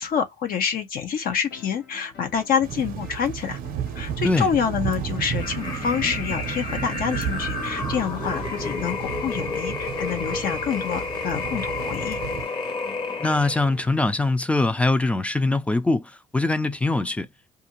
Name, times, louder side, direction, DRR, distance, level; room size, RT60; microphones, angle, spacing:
voice 1, 0.0-3.6 3.9-12.2, left 7 dB, 60° left, 0.7 m, -27 dB
sound 1, 1.5-15.0, left 5 dB, 80° left, 1.0 m, -47 dB
sound 2, 2.6-12.4, right 9 dB, 60° right, 0.6 m, -33 dB
sound 3, 5.3-13.7, left 3 dB, 30° left, 0.9 m, -31 dB
voice 2, 13.2-17.3, left 2 dB, 5° left, 0.4 m, -22 dB
2.5 x 2.4 x 2.9 m
cardioid pair, 110°, 17 cm